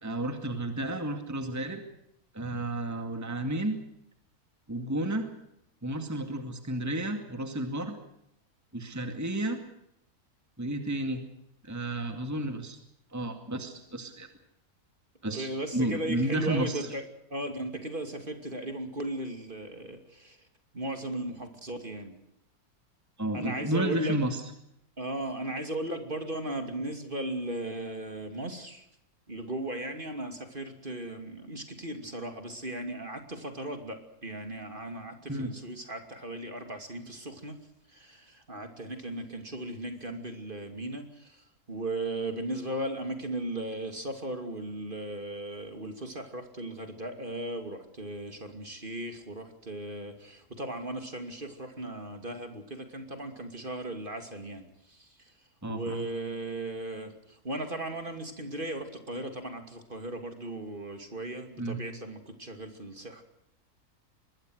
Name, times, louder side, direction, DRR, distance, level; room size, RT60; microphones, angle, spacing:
voice 1, 0.0-1.8 2.3-3.8 4.7-5.3 5.8-8.0 8.7-9.6 10.6-11.2 11.6-12.8 13.1-14.3 15.2-16.9 23.2-24.4 35.3-35.5 55.6-56.1 61.6-61.8, right 1 dB, 10° right, 7 dB, 2.2 m, -32 dB
voice 2, 15.3-17.0 17.3-20.4 20.7-22.2 23.3-24.2 25.0-28.8 29.3-37.6 37.9-55.1 55.7-63.2, right 1 dB, 35° right, 7 dB, 2.8 m, -37 dB
25.0 x 21.0 x 6.4 m, 0.78 s
omnidirectional pair, 1.6 m